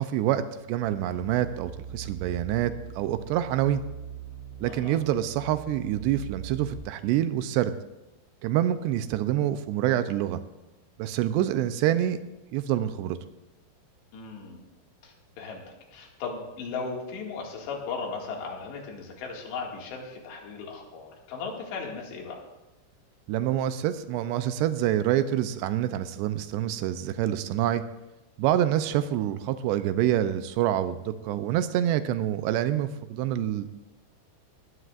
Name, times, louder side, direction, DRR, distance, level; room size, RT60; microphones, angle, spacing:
voice 1, 0.0-3.8 4.6-7.7 8.4-10.4 11.0-12.2 12.5-13.2 23.3-27.8 28.4-33.8, right 12 dB, 80° right, 11 dB, 2.7 m, -26 dB
sound 1, 0.8-6.8, right 9 dB, 65° left, 6.3 m, -41 dB
voice 2, 4.7-5.0 14.1-14.7 15.0-15.6 15.9-22.4, left 4 dB, 80° left, 0 dB, 4.3 m, -37 dB
19.5 x 16.0 x 2.5 m, 1.0 s
omnidirectional pair, 5.0 m